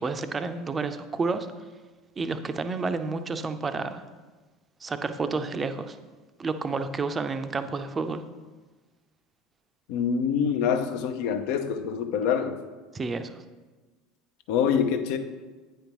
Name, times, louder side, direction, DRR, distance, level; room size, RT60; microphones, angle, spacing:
voice 1, 0.0-1.5 2.2-4.0 4.8-6.0 6.4-8.2 12.9-13.4, right 4 dB, 25° right, 9 dB, 0.5 m, -30 dB
voice 2, 9.9-12.6 14.5-15.2, left 7 dB, 65° left, 7 dB, 0.6 m, -25 dB
8.7 x 5.2 x 3.0 m, 1.3 s
hypercardioid pair, 75°, 0 cm